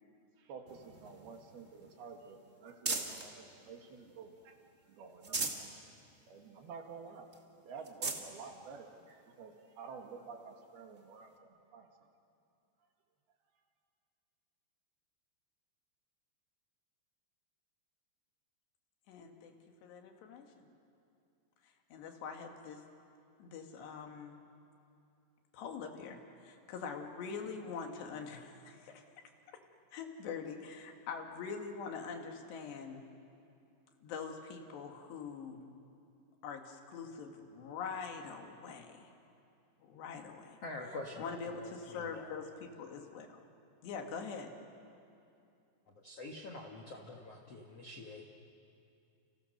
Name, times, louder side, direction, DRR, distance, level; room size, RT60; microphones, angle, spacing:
voice 1, 0.4-4.6 4.9-5.5 6.3-7.3 7.7-11.9, right 5 dB, 65° right, 3 dB, 3.6 m, -50 dB
sound 1, 0.7-3.3 3.8-4.6 5.0-5.7 6.2-6.3 6.6-6.7 7.3-7.4 7.8-8.3 9.1-9.2 11.0-11.1, right 3 dB, 45° right, 0.9 m, -40 dB
voice 2, 19.1-19.5 19.8-20.5 21.9-22.8 23.4-24.4 25.5-28.9 29.9-33.0 34.0-35.6 36.4-39.1 39.8-40.6 41.2-43.4 43.8-44.5, left 5 dB, 75° left, 3 dB, 4.0 m, -44 dB
voice 3, 40.6-42.3 45.9-48.2, left 2 dB, 55° left, 1 dB, 1.7 m, -46 dB
30.0 x 29.5 x 6.7 m, 2.6 s
omnidirectional pair, 5.0 m